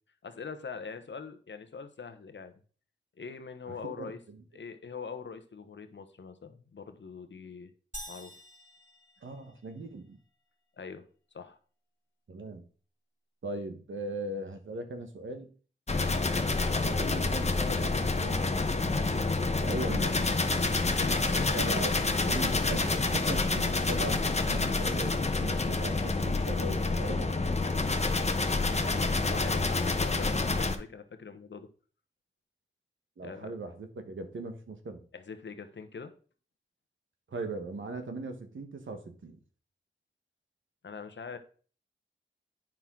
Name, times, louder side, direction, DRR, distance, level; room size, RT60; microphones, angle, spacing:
voice 1, 0.2-2.5 3.2-4.2 4.5-7.7 8.1-8.3 10.8-11.1 11.3-11.6 20.8-21.7 22.1-22.3 23.7-23.8 29.3-31.7 33.2-33.5 35.1-36.1 40.8-41.4, left 5 dB, 70° left, 9 dB, 1.1 m, -43 dB
voice 2, 3.7-4.4 9.2-10.2 12.3-12.6 13.4-15.5 16.9-18.9 19.6-20.3 21.6-27.4 33.2-35.0 37.3-39.4, right 2 dB, 80° right, 7 dB, 1.3 m, -39 dB
sound 1, 7.9-9.9, equal, 40° right, 4.0 m, -47 dB
sound 2, 15.9-30.8, left 3 dB, 35° left, 1.0 m, -28 dB
8.9 x 6.0 x 3.7 m, 0.41 s
cardioid pair, 50°, 20 cm